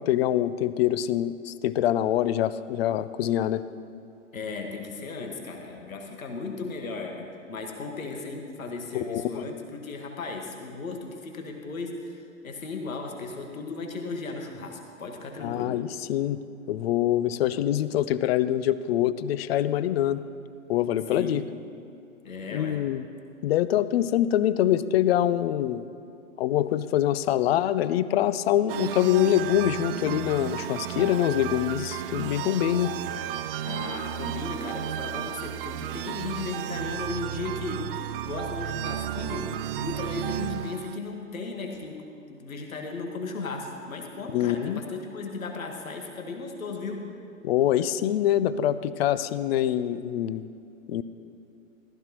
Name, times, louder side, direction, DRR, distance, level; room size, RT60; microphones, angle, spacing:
voice 1, 0.0-3.6 9.1-9.4 15.4-16.4 16.7-20.2 20.7-21.4 22.5-23.1 23.4-25.8 26.4-32.9 44.3-44.8 47.4-50.5 50.9-51.0, left 12 dB, 50° left, 15 dB, 0.6 m, -25 dB
voice 2, 4.3-12.2 12.4-15.8 21.1-21.4 22.2-22.8 33.6-47.1, left 3 dB, 80° left, 2 dB, 1.7 m, -36 dB
sound 1, 28.7-41.0, right 11 dB, 45° right, 0.5 m, -33 dB
15.0 x 13.5 x 3.0 m, 2.6 s
hypercardioid pair, 115°, 40 cm